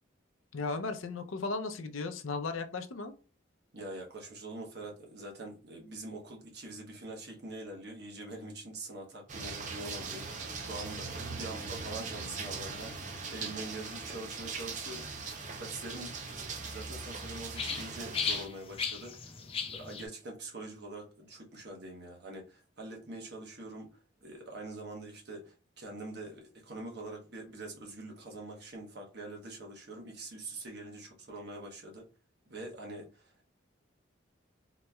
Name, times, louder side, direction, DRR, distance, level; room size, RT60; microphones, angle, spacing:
voice 1, 0.5-3.1, left 3 dB, 85° left, 0.6 m, -36 dB
voice 2, 3.7-10.3 10.5-19.4 19.7-32.1 32.5-33.5, right 2 dB, 55° right, 1.1 m, -44 dB
sound 1, 9.3-18.5, right 4 dB, 40° right, 0.5 m, -40 dB
sound 2, 9.8-20.1, left 6 dB, 30° left, 0.4 m, -42 dB
3.9 x 3.0 x 2.3 m
head